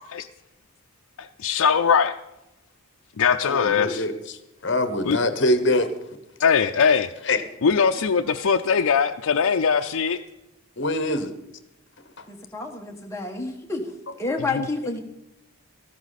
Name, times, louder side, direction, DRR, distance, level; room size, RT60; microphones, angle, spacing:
voice 1, 1.4-2.1 3.2-4.0 5.0-5.2 6.4-7.1 7.6-10.2 14.5-14.6, left 6 dB, 80° left, 4 dB, 0.5 m, -20 dB
voice 2, 3.4-4.4 4.6-5.9 6.8-7.0 7.2-7.4 10.8-11.3 12.2-12.3, left 1 dB, 55° left, 10 dB, 1.2 m, -24 dB
voice 3, 12.3-13.9 14.2-15.0, left 3 dB, 15° left, 2 dB, 1.4 m, -29 dB
14.0 x 13.0 x 4.2 m, 0.91 s
head